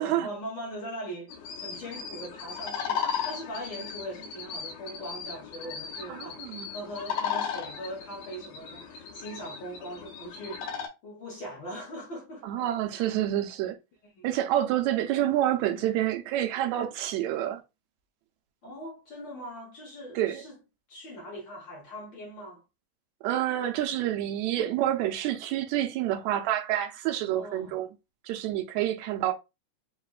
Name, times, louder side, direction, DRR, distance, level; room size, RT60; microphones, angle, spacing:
voice 1, 0.0-13.2 14.1-14.3 18.6-20.6 20.9-22.6 27.4-27.8, equal, 50° left, 1.5 m, -41 dB
sound 1, 1.3-10.9, left 7 dB, 80° left, 2.1 m, -36 dB
voice 2, 6.1-6.7 12.4-13.8 14.2-17.6 20.2-20.4 23.2-27.9 28.3-29.3, right 12 dB, 80° right, 1.9 m, -28 dB
4.9 x 3.0 x 2.3 m
omnidirectional pair, 3.3 m